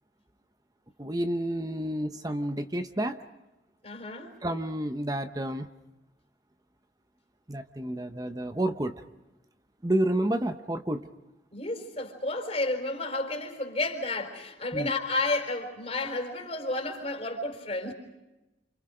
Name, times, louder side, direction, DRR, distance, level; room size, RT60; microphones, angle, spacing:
voice 1, 1.0-3.2 4.4-5.7 7.5-9.0 9.8-11.1 14.7-14.9, right 1 dB, 20° right, 0.9 m, -30 dB
voice 2, 3.8-4.3 11.5-17.9, left 2 dB, 35° left, 4.1 m, -31 dB
30.0 x 28.5 x 5.1 m
head